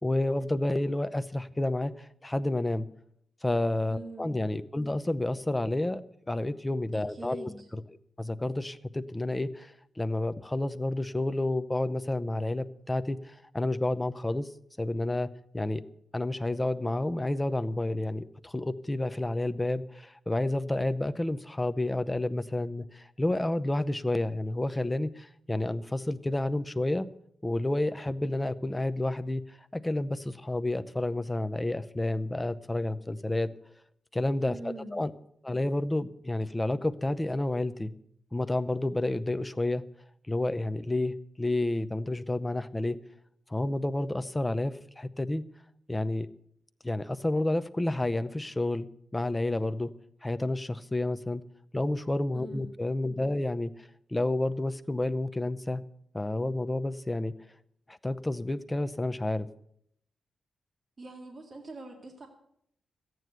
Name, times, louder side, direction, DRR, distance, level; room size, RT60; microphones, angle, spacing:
voice 1, 0.0-2.9 3.4-7.5 8.2-14.5 14.8-15.8 16.1-27.1 27.4-33.5 34.1-35.1 35.4-37.9 38.3-39.8 40.3-43.0 43.5-45.4 45.9-46.3 46.8-49.9 50.2-51.4 51.7-53.7 54.1-55.8 56.1-57.3 57.9-59.5, left 1 dB, 15° left, 11 dB, 0.7 m, -30 dB
voice 2, 3.9-4.3 6.9-7.7 34.4-34.9 52.3-52.7 61.0-62.3, right 2 dB, 35° right, 2 dB, 2.1 m, -43 dB
14.0 x 9.3 x 8.0 m, 0.70 s
wide cardioid pair, 110°, 0 cm